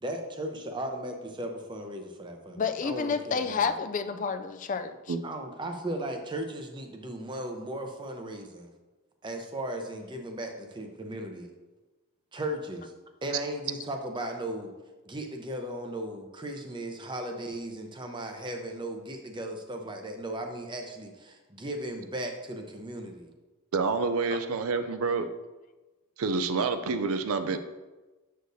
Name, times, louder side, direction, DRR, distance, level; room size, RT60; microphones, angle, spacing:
voice 1, 0.0-3.7 5.2-8.7 9.2-11.5 12.3-12.9 13.2-14.7 15.1-23.3, right 1 dB, 20° right, 4 dB, 0.7 m, -36 dB
voice 2, 2.6-5.1, left 5 dB, 35° left, 9 dB, 0.3 m, -30 dB
voice 3, 23.7-25.3 26.2-27.6, right 4 dB, 80° right, 9 dB, 0.4 m, -28 dB
7.7 x 6.5 x 2.7 m, 1.2 s
head